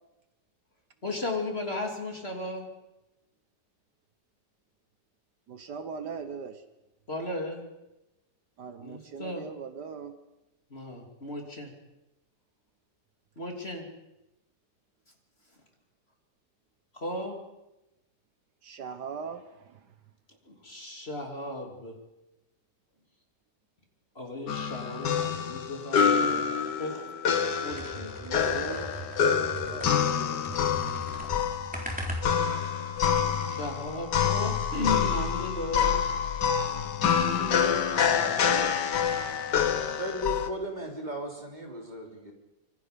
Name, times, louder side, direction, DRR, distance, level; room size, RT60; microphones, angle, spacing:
voice 1, 1.0-2.7 7.1-7.7 8.8-9.4 10.7-11.7 13.4-13.9 16.9-17.4 20.5-22.0 24.2-26.5 26.8-27.1 27.6-28.4 33.5-36.0, left 2 dB, 35° left, 1 dB, 3.4 m, -35 dB
voice 2, 5.5-6.6 8.6-10.2 18.6-19.9 28.2-28.9 29.7-30.7 37.2-38.8, right 6 dB, 70° right, 9 dB, 1.8 m, -40 dB
sound 1, 24.5-40.5, left 7 dB, 70° left, 1.8 m, -27 dB
sound 2, 27.7-30.2 30.4-32.7, equal, 5° right, 3.9 m, -39 dB
voice 3, 40.0-42.3, equal, 25° right, 0 dB, 3.6 m, -35 dB
26.0 x 24.0 x 5.3 m, 0.98 s
omnidirectional pair, 1.9 m